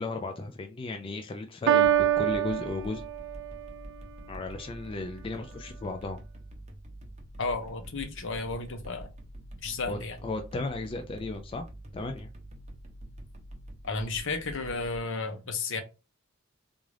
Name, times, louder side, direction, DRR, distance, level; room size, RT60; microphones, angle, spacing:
voice 1, 0.0-3.0 4.3-6.2 9.9-11.7 11.9-12.3, left 2 dB, 25° left, 0.3 m, -35 dB
Piano, 1.7-3.6, right 11 dB, 55° right, 0.3 m, -25 dB
sound 1, 1.8-15.0, right 1 dB, 30° right, 0.7 m, -46 dB
voice 2, 7.4-9.1 9.6-10.2 13.8-15.8, left 3 dB, 60° left, 0.8 m, -33 dB
3.7 x 2.5 x 3.2 m
head